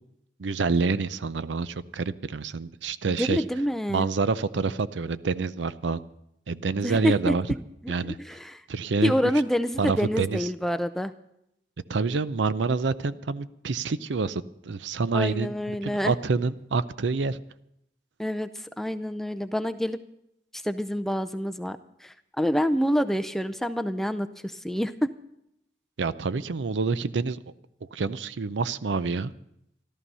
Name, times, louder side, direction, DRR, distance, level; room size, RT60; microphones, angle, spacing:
voice 1, 0.4-3.4 3.9-6.0 6.5-7.5 7.9-8.2 8.7-9.1 9.8-10.5 11.9-17.4 26.0-27.4 27.9-29.3, right 4 dB, 85° right, 15 dB, 0.5 m, -27 dB
voice 2, 3.1-4.1 6.8-7.3 8.0-8.6 9.0-11.1 15.1-16.1 18.2-20.0 20.5-25.1, equal, ahead, 9 dB, 0.4 m, -27 dB
14.5 x 12.5 x 5.5 m, 0.79 s
head